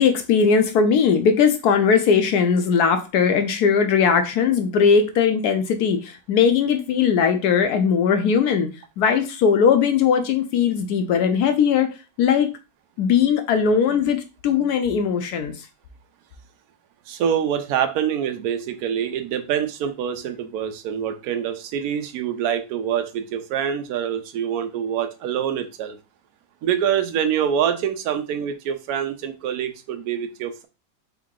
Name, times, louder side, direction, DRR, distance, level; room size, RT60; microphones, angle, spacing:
voice 1, 0.0-8.7 9.0-11.9 12.2-12.5 13.0-15.5, left 6 dB, 70° left, 7 dB, 1.0 m, -19 dB
voice 2, 17.1-26.0 26.6-30.7, right 9 dB, 65° right, 7 dB, 1.0 m, -25 dB
3.6 x 3.0 x 3.7 m, 0.30 s
omnidirectional pair, 2.0 m